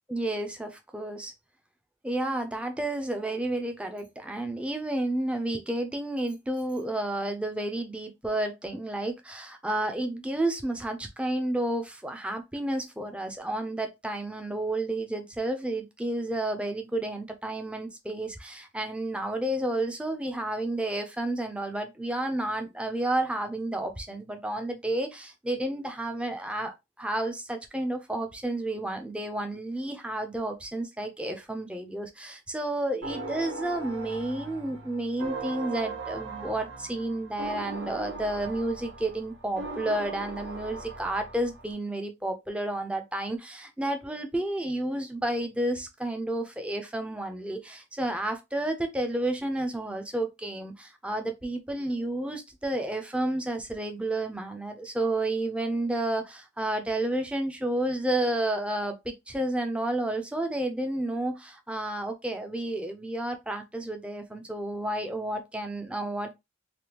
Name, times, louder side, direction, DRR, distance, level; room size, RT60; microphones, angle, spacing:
voice 1, 0.1-1.3 2.0-66.3, right 1 dB, 5° right, 0.4 m, -31 dB
sound 1, 33.0-41.7, right 3 dB, 60° right, 0.7 m, -39 dB
3.3 x 2.2 x 2.9 m
head